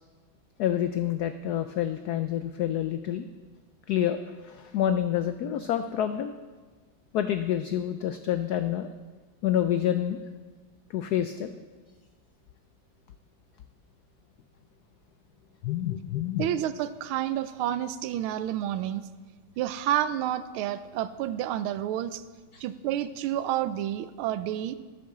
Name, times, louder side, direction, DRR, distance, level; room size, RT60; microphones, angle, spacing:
voice 1, 0.6-3.2 3.9-4.2 4.4-6.3 7.1-8.9 9.4-10.2 10.9-11.6 15.6-16.5 22.5-22.6, left 10 dB, 90° left, 9 dB, 0.8 m, -28 dB
voice 2, 16.4-19.1 19.6-22.2 22.6-24.8, right 11 dB, 85° right, 13 dB, 1.5 m, -29 dB
10.0 x 8.5 x 6.6 m, 1.4 s
omnidirectional pair, 2.2 m